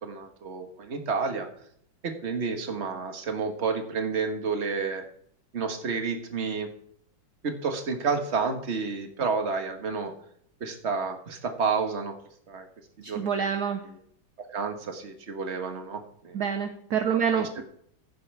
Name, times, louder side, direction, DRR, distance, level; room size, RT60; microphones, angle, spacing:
voice 1, 0.0-1.5 2.0-5.0 5.5-6.7 7.4-10.1 10.6-12.1 12.5-12.7 13.1-13.4 14.5-16.4 17.3-17.5, right 5 dB, 35° right, 5 dB, 1.6 m, -30 dB
voice 2, 13.0-13.8 16.3-17.6, right 7 dB, 60° right, 6 dB, 1.3 m, -27 dB
15.0 x 9.5 x 3.4 m, 0.65 s
omnidirectional pair, 2.3 m